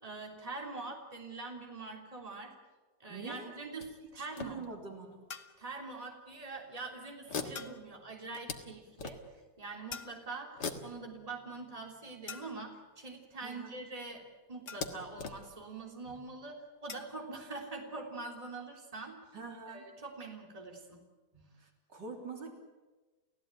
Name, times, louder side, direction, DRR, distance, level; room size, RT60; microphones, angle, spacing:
voice 1, 0.0-2.6 3.0-4.7 5.6-9.2 9.6-14.2 14.5-19.2 19.7-21.1 21.3-21.4, right 3 dB, 20° right, 1 dB, 3.4 m, -44 dB
voice 2, 3.1-3.5 4.2-5.3 13.4-13.7 19.3-19.9 21.6-22.5, right 4 dB, 65° right, 2 dB, 4.2 m, -45 dB
sound 1, 3.8-5.1 5.9-6.0 6.3-6.6 7.3-9.6 10.5-12.2 13.4-13.5 13.8-13.9 14.7-16.3, left 5 dB, 60° left, 2.2 m, -43 dB
sound 2, 5.3-5.7 7.5-7.9 9.9-10.5 12.3-12.8 14.7-15.2 16.9-17.2, left 6 dB, 40° left, 1.1 m, -47 dB
30.0 x 16.5 x 9.1 m, 1.2 s
omnidirectional pair, 2.1 m